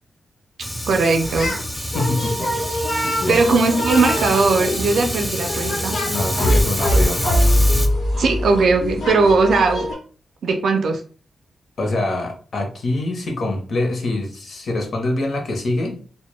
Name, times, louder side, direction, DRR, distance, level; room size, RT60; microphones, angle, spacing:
Fire, 0.6-7.9, equal, 5° left, 0.4 m, -27 dB
voice 1, 0.9-1.5 3.0-6.0 8.2-9.9 10.4-11.0, right 3 dB, 75° right, 5 dB, 0.3 m, -18 dB
sound 1, 1.2-1.6 1.9-9.9, left 1 dB, 90° left, 0.8 m, -23 dB
voice 2, 1.7-2.5 3.2-3.4 6.0-7.2 11.8-16.0, left 2 dB, 60° left, 2 dB, 0.7 m, -24 dB
2.1 x 2.0 x 3.0 m, 0.40 s
wide cardioid pair, 110°, 0 cm